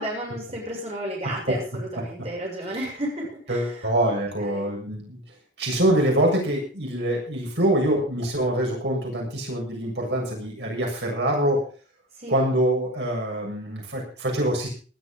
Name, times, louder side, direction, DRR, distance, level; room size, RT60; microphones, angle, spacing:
voice 1, 0.0-4.7 12.2-12.5, right 1 dB, 35° right, -2 dB, 7.2 m, -33 dB
voice 2, 1.2-1.6 3.5-5.2 5.6-11.6 12.3-14.7, right 1 dB, 75° right, 0 dB, 7.0 m, -24 dB
19.5 x 12.5 x 4.0 m, 0.38 s
head